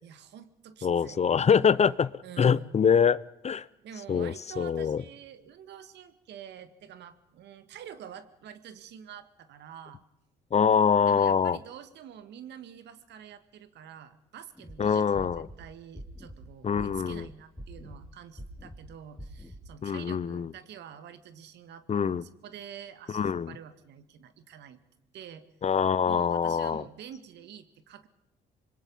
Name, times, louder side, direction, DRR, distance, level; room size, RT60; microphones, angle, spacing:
voice 1, 0.0-1.2 2.2-2.7 3.8-10.0 11.1-24.8 25.1-25.5 26.0-28.1, right 8 dB, 70° right, 11 dB, 1.9 m, -47 dB
voice 2, 0.8-2.1 2.4-3.6 4.1-5.0 10.5-11.6 14.8-15.5 16.6-17.3 19.8-20.5 21.9-22.2 23.1-23.5 25.6-26.8, left 7 dB, 35° left, 19 dB, 0.7 m, -24 dB
sound 1, 14.6-14.8 15.1-15.6 16.0-16.4 16.8-17.2 17.6-18.0 18.4-18.8 19.2-19.6, equal, 5° left, 4.8 m, -44 dB
25.5 x 22.0 x 5.5 m, 0.87 s
supercardioid pair, 65°, 19 cm